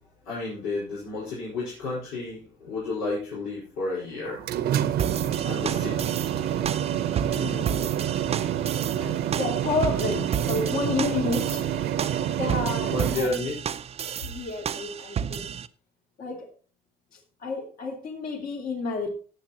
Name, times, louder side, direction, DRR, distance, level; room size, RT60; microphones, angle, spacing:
voice 1, 0.2-4.4 5.4-6.1 9.0-9.2 12.9-13.5, left 2 dB, 85° left, -7 dB, 5.1 m, -31 dB
sound 1, 4.2-13.2, right 10 dB, 70° right, 1.0 m, -27 dB
sound 2, 5.0-15.7, right 8 dB, 35° right, 0.6 m, -33 dB
voice 2, 7.2-8.1 9.4-11.7 12.4-13.3 14.2-15.6 16.2-16.5 17.1-19.1, left 4 dB, 60° left, 1 dB, 3.0 m, -31 dB
18.0 x 7.2 x 3.0 m, 0.40 s
cardioid pair, 110°, 17 cm